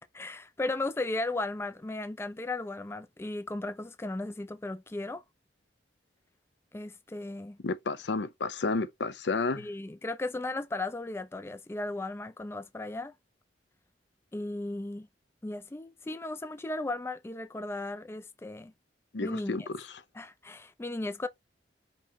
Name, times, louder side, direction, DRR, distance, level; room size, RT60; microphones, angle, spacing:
voice 1, 0.1-5.2 6.7-7.6 9.6-13.1 14.3-15.1 15.4-18.7 19.2-19.7 20.1-21.3, left 2 dB, 15° left, 0.3 m, -36 dB
voice 2, 7.6-9.7 19.1-20.0, left 3 dB, 70° left, 0.6 m, -31 dB
5.4 x 2.9 x 3.0 m
head